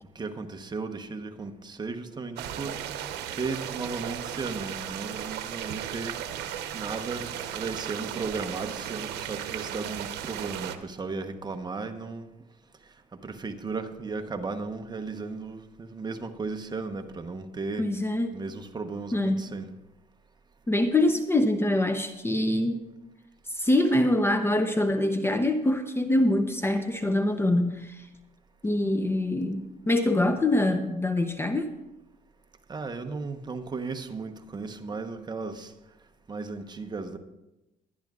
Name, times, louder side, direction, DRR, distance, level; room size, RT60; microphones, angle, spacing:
voice 1, 0.1-2.8 3.3-6.1 6.7-12.3 13.2-17.9 18.3-19.7 32.7-35.7 36.3-37.2, right 4 dB, 25° right, 1.0 m, -35 dB
sound 1, 2.4-10.8, right 10 dB, 80° right, 0.9 m, -35 dB
voice 2, 17.8-18.4 19.1-19.5 20.7-22.8 23.5-28.0 28.6-31.8, left 1 dB, 15° left, 0.7 m, -24 dB
22.5 x 10.5 x 2.5 m
cardioid pair, 110°, 17 cm